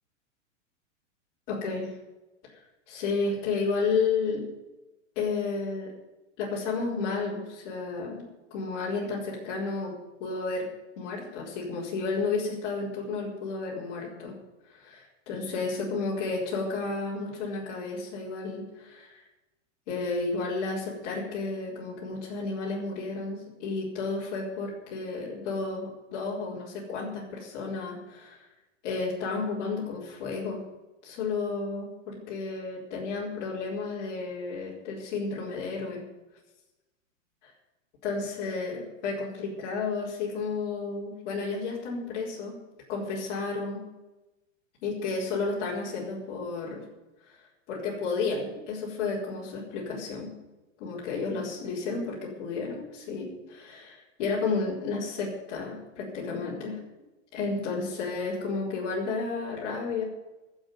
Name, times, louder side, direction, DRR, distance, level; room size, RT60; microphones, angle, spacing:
voice 1, 1.5-1.9 2.9-4.4 5.1-5.9 6.4-8.2 8.5-9.9 10.2-10.7 11.0-14.3 14.7-19.2 19.9-28.4 28.8-30.6 31.0-36.0 38.0-42.6 42.9-43.8 44.8-46.8 47.7-50.3 50.8-56.8 57.3-60.0, left 4 dB, 35° left, -6 dB, 4.7 m, -32 dB
14.0 x 7.6 x 9.6 m, 1.1 s
supercardioid pair, 165°, 39 cm